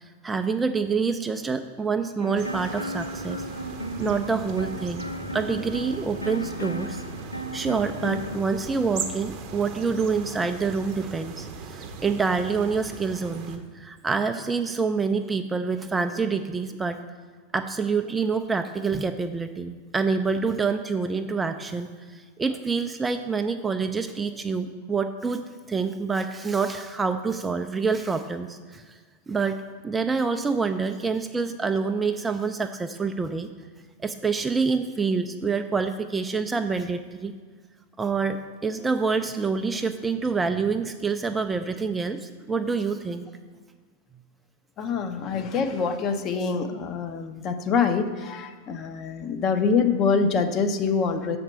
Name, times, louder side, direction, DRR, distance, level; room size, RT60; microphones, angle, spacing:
voice 1, 0.2-3.4 4.0-5.0 5.3-7.0 7.5-17.0 17.5-25.4 25.7-29.0 29.3-33.5 34.0-37.3 38.0-43.3, right 4 dB, 10° right, 7 dB, 0.3 m, -27 dB
sound 1, 2.2-8.4, equal, 85° left, 0.4 m, -35 dB
sound 2, 2.4-13.6, right 4 dB, 40° right, 0.7 m, -39 dB
voice 2, 44.8-51.4, left 5 dB, 30° left, 7 dB, 0.6 m, -25 dB
6.6 x 4.3 x 6.6 m, 1.5 s
figure-of-eight pair, 90°, 0 cm